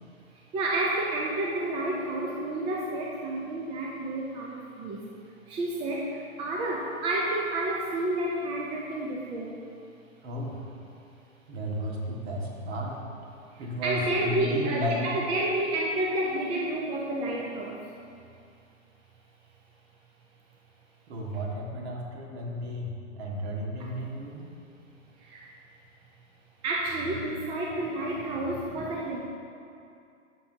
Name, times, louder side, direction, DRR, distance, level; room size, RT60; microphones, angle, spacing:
voice 1, 0.5-5.1 5.5-9.5 13.8-17.9 25.2-25.5 26.6-29.2, right 1 dB, 15° right, -2 dB, 0.4 m, -30 dB
voice 2, 10.2-10.7 11.5-13.0 13.6-15.1 21.1-24.5, equal, 50° right, -1 dB, 1.8 m, -33 dB
13.0 x 5.9 x 2.8 m, 2.5 s
hypercardioid pair, 120°, 40 cm